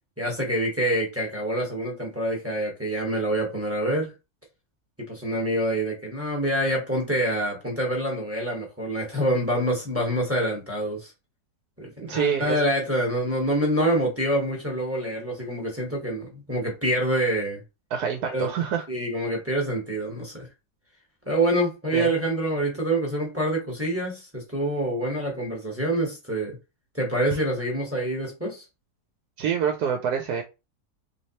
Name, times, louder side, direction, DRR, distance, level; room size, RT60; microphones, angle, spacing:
voice 1, 0.2-4.1 5.0-11.1 11.8-17.6 18.3-18.5 18.9-20.5 21.3-26.6 26.9-28.6, right 1 dB, 10° right, 0.9 m, -26 dB
voice 2, 12.1-12.6 17.9-18.8 21.9-22.1 29.4-30.4, right 7 dB, 80° right, 1.1 m, -26 dB
3.2 x 3.1 x 2.8 m
omnidirectional pair, 1.7 m